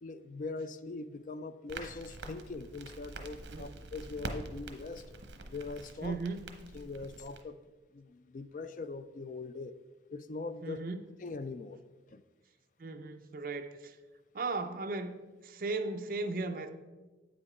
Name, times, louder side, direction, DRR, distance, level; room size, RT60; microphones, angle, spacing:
voice 1, 0.0-5.1 5.4-6.2 6.7-7.6 7.9-9.8 10.1-10.8 11.2-11.8 12.1-12.2, left 3 dB, 45° left, 0.3 m, -42 dB
Crackle, 1.7-7.4, right 2 dB, 75° right, 0.8 m, -45 dB
voice 2, 6.0-6.5 10.6-11.0 12.8-14.0 14.3-16.7, right 3 dB, 50° right, 0.5 m, -37 dB
8.4 x 5.1 x 4.8 m
head